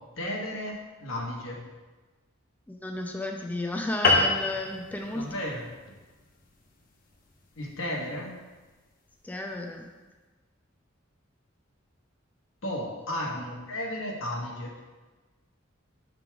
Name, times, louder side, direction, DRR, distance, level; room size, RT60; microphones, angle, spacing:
voice 1, 0.2-1.6 5.1-5.6 7.6-8.3 12.6-14.8, left 1 dB, 80° left, -2 dB, 1.2 m, -34 dB
voice 2, 2.7-5.3 9.2-9.9, left 2 dB, 10° left, 2 dB, 0.4 m, -33 dB
sound 1, 4.0-8.8, left 3 dB, 45° left, 0.7 m, -28 dB
5.8 x 3.9 x 4.6 m, 1.3 s
head